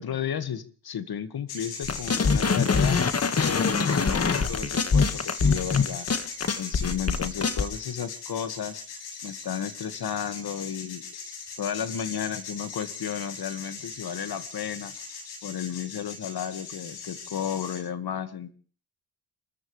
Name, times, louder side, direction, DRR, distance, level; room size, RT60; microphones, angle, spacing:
voice 1, 0.0-3.0 3.4-6.2 6.6-11.0 11.6-14.9 15.4-18.5, left 8 dB, 60° left, 11 dB, 2.0 m, -33 dB
sound 1, 1.5-17.8, left 5 dB, 85° left, 7.4 m, -39 dB
sound 2, 1.9-7.6, left 5 dB, 35° left, 1.8 m, -24 dB
29.5 x 14.5 x 3.4 m, 0.43 s
supercardioid pair, 65°, 43 cm